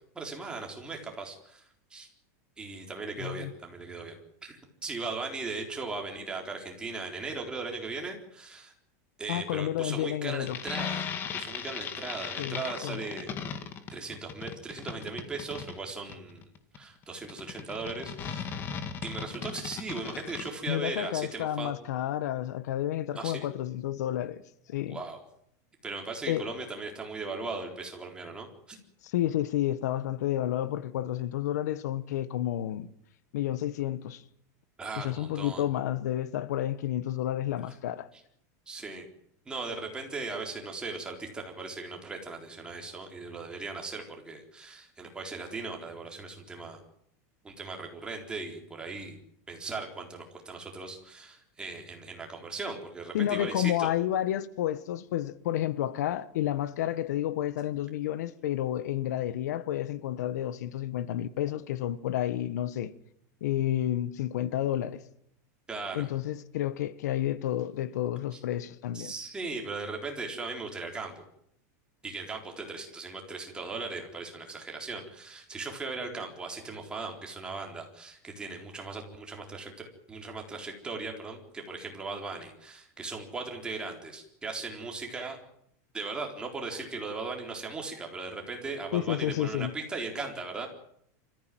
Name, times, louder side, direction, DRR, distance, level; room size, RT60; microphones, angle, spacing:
voice 1, 0.1-2.1 2.6-8.7 9.2-13.3 13.9-16.4 16.7-18.6 19.0-21.7 23.2-23.5 24.9-25.2 25.8-28.8 34.8-35.6 38.7-39.1 39.5-46.8 47.4-49.2 49.5-53.9 65.7-66.1 68.3-68.4 68.9-71.2 72.0-85.4 85.9-90.7, right 3 dB, 10° right, 4.0 m, -38 dB
voice 2, 3.2-3.5 9.3-10.6 12.4-13.0 20.7-24.4 24.7-25.0 26.3-26.4 29.0-32.9 33.3-34.2 35.0-38.1 53.1-62.9 63.4-65.0 65.9-69.1 88.9-89.7, left 12 dB, 80° left, 1.3 m, -30 dB
sound 1, 10.4-20.5, left 7 dB, 25° left, 1.9 m, -37 dB
26.0 x 14.5 x 9.3 m
supercardioid pair, 165°, 9 cm